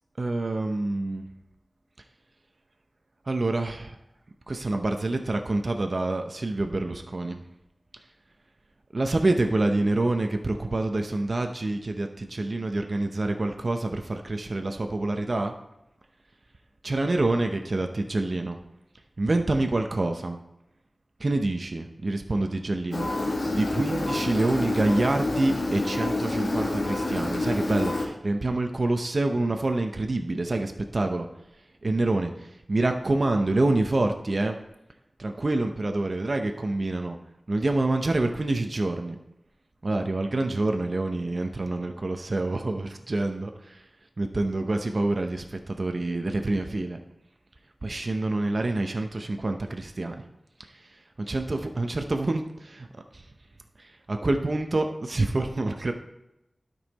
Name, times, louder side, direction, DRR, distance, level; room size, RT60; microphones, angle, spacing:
voice 1, 0.2-1.2 3.3-4.0 4.5-7.4 8.9-15.5 16.8-18.6 19.2-20.4 21.2-23.1 23.5-31.3 31.8-34.6 35.2-37.2 37.5-39.2 39.8-43.8 44.2-47.0 47.8-50.2 51.2-52.9 53.1-53.2 53.8-55.9, right 2 dB, 50° right, 5 dB, 0.7 m, -27 dB
Engine, 22.9-28.1, left 2 dB, 70° left, 1.7 m, -28 dB
12.0 x 5.5 x 4.1 m, 0.88 s
wide cardioid pair, 80°, 0 cm